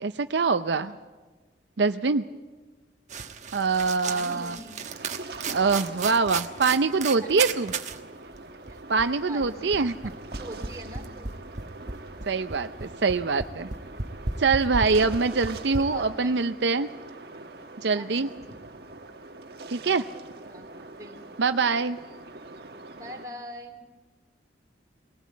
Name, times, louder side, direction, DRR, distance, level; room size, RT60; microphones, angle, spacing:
voice 1, 0.0-0.9 1.8-2.2 3.5-4.6 5.5-7.7 8.9-9.9 12.3-13.7 14.4-16.9 17.8-18.3 19.7-20.0 21.4-22.0, right 4 dB, 75° right, 9 dB, 0.6 m, -24 dB
sound 1, 3.1-8.0 8.3-8.4 8.7-15.8, right 4 dB, 40° right, 1.2 m, -34 dB
voice 2, 4.0-4.9 7.2-7.4 9.3-11.3 15.4-16.4 17.9-18.6 20.5-21.4 22.9-23.9, right 1 dB, 20° right, 1 dB, 3.0 m, -43 dB
sound 2, 4.8-23.3, right 2 dB, 55° right, 1.4 m, -43 dB
21.5 x 18.0 x 8.4 m, 1.3 s
head